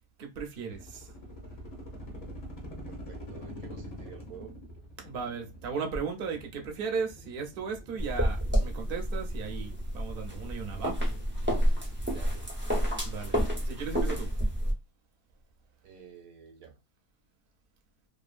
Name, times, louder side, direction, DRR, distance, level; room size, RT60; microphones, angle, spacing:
voice 1, 0.2-1.1 5.0-10.9 13.0-13.3 13.6-14.3, right 5 dB, 50° right, 0.7 m, -36 dB
sound 1, 0.7-12.5, equal, 40° left, 0.6 m, -46 dB
voice 2, 2.9-4.5 12.1-12.5 12.8-13.3 15.8-16.8, right 7 dB, 75° right, 1.1 m, -50 dB
sound 2, 8.0-14.7, equal, 15° right, 0.4 m, -29 dB
2.7 x 2.3 x 2.4 m
omnidirectional pair, 1.5 m